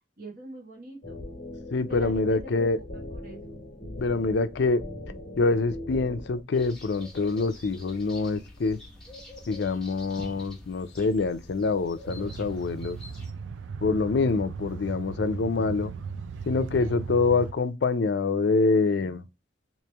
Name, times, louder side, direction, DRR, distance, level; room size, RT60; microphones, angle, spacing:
voice 1, 0.2-1.2 1.9-3.6, right 2 dB, 50° right, 1.3 m, -43 dB
sound 1, 1.0-6.4, left 1 dB, 45° left, 1.1 m, -40 dB
voice 2, 1.7-2.8 4.0-4.8 5.4-8.8 9.5-13.0 13.8-15.9 16.5-19.2, left 3 dB, 65° left, 0.4 m, -25 dB
sound 2, 6.5-13.3, left 1 dB, 5° left, 0.9 m, -46 dB
sound 3, 12.1-17.5, right 5 dB, 75° right, 0.3 m, -37 dB
3.1 x 2.9 x 3.3 m
head